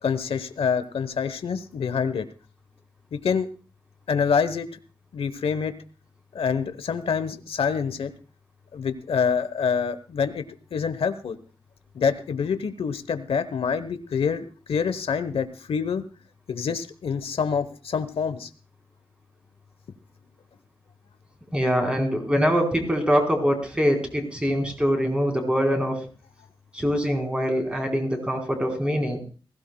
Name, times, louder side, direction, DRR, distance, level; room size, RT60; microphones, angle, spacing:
voice 1, 0.0-2.3 3.1-3.5 4.1-4.7 5.1-5.7 6.3-8.1 8.7-10.4 10.7-11.4 11.9-16.0 16.5-18.5, left 6 dB, 85° left, 11 dB, 1.0 m, -26 dB
voice 2, 21.5-26.0 26.7-29.2, equal, 10° right, 2 dB, 4.1 m, -23 dB
20.5 x 16.0 x 2.3 m, 0.37 s
wide cardioid pair, 130°, 9 cm